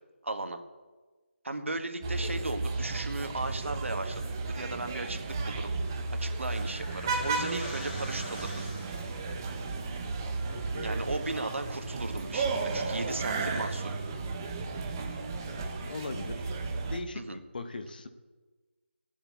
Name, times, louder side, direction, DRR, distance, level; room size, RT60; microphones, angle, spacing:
voice 1, 0.2-0.6 1.4-5.7 6.1-8.7 10.8-14.0 17.1-17.4, right 2 dB, 85° right, 7 dB, 1.6 m, -36 dB
sound 1, 2.0-17.0, right 3 dB, 20° right, 0.8 m, -34 dB
sound 2, 5.8-9.3, left 1 dB, 30° left, 4.2 m, -45 dB
voice 2, 10.5-11.0 15.8-16.5 16.8-18.1, left 3 dB, 45° left, 9 dB, 1.1 m, -40 dB
12.5 x 7.2 x 8.3 m, 1.3 s
figure-of-eight pair, 170°, 7 cm